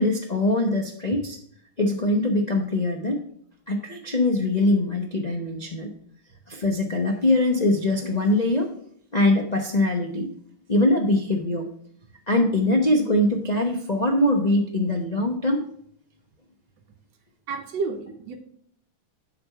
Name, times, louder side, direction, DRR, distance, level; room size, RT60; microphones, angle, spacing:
voice 1, 0.0-1.4 1.8-3.2 3.7-5.9 6.5-8.7 9.1-10.3 10.7-11.7 12.3-15.7, left 1 dB, 40° left, 1 dB, 0.6 m, -22 dB
voice 2, 17.5-18.3, right 4 dB, 65° right, 2 dB, 1.4 m, -30 dB
7.8 x 5.2 x 5.6 m, 0.64 s
omnidirectional pair, 2.3 m